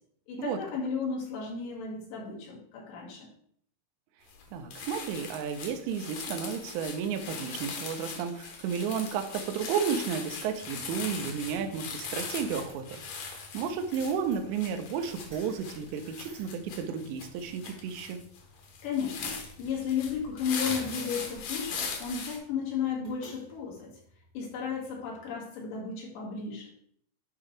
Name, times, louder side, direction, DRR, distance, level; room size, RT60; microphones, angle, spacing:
voice 1, 0.3-3.3 18.8-23.9 24.3-26.7, left 6 dB, 80° left, -3 dB, 4.3 m, -34 dB
sound 1, 4.3-4.4 4.7-22.4, left 5 dB, 65° left, 2.5 m, -40 dB
voice 2, 4.5-18.2, right 7 dB, 85° right, 6 dB, 3.0 m, -33 dB
sound 2, 10.6-25.3, equal, 30° right, 0.7 m, -54 dB
11.0 x 4.8 x 3.3 m, 0.66 s
omnidirectional pair, 5.0 m